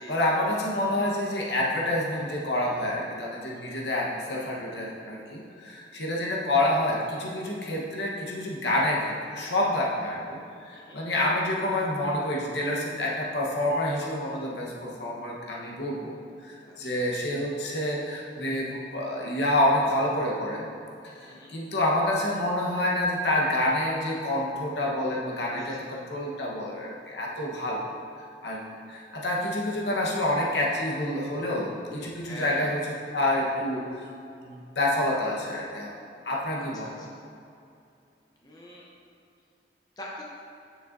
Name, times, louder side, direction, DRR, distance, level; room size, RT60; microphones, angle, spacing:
voice 1, 0.0-20.7 21.0-27.8 28.4-28.6 28.9-34.0 34.4-35.9 36.2-36.9, left 1 dB, 80° left, -3 dB, 1.1 m, -28 dB
voice 2, 10.7-11.1 16.6-17.1 21.2-21.5 25.5-25.8 32.2-32.8 36.6-37.2 38.4-38.8 40.0-40.2, left 1 dB, 20° left, -4 dB, 0.8 m, -43 dB
7.6 x 6.6 x 2.6 m, 2.5 s
head